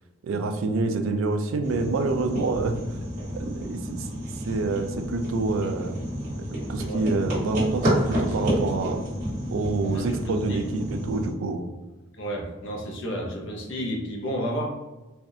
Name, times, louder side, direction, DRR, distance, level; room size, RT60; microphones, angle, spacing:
voice 1, 0.2-2.8 3.3-4.1 4.4-6.4 6.7-9.0 9.5-11.7, right 3 dB, 75° right, 6 dB, 0.4 m, -27 dB
sound 1, 1.6-11.3, equal, 40° right, 1.3 m, -30 dB
voice 2, 9.9-10.7 12.2-14.7, equal, 60° left, 0 dB, 0.7 m, -31 dB
3.4 x 2.4 x 2.7 m, 1.1 s
head